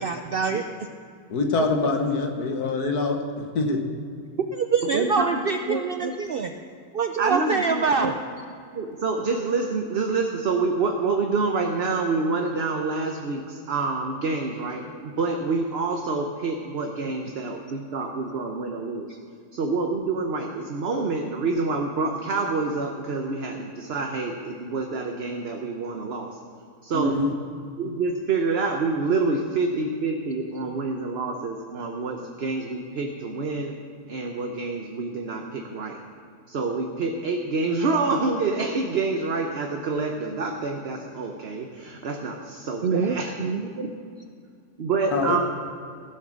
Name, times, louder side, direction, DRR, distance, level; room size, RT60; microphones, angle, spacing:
voice 1, 0.0-0.6 4.5-6.5 6.9-8.1 42.8-43.7, right 5 dB, 90° right, 6 dB, 0.5 m, -25 dB
voice 2, 1.3-3.8 26.9-27.3 45.1-45.4, left 3 dB, 80° left, 4 dB, 1.7 m, -24 dB
voice 3, 4.9-6.1 7.2-8.2 8.7-19.1 19.5-26.4 26.8-27.4 27.8-33.7 34.1-36.0 36.5-43.3 43.7-43.9 44.8-45.4, right 3 dB, 50° right, 3 dB, 1.0 m, -27 dB
16.0 x 7.9 x 6.2 m, 2.4 s
omnidirectional pair, 1.6 m